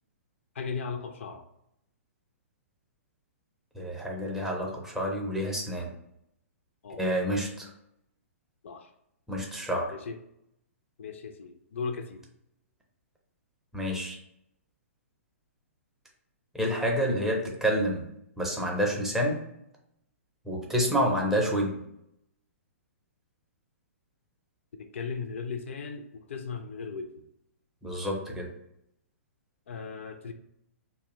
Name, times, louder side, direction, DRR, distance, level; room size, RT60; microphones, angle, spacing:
voice 1, 0.6-1.4 6.8-7.0 8.6-8.9 9.9-10.2 11.0-12.3 24.8-27.2 29.7-30.3, left 5 dB, 60° left, 6 dB, 0.3 m, -37 dB
voice 2, 3.7-5.9 7.0-7.7 9.3-10.0 13.7-14.2 16.5-18.1 18.4-19.4 20.5-21.8 27.8-28.5, equal, 5° right, -1 dB, 0.4 m, -28 dB
2.6 x 2.0 x 3.5 m, 0.78 s
figure-of-eight pair, 115°, 8 cm